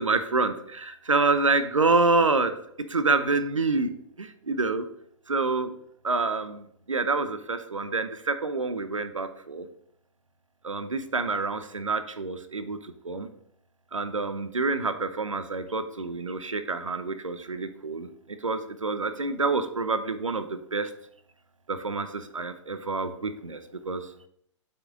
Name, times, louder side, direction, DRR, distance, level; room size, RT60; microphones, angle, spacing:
voice 1, 0.0-2.5 2.9-4.9 5.3-5.7 6.0-9.7 10.6-13.3 13.9-18.1 18.4-20.9 21.7-24.0, right 3 dB, 85° right, 10 dB, 0.9 m, -27 dB
7.7 x 5.8 x 3.7 m, 0.69 s
figure-of-eight pair, 120°, 16 cm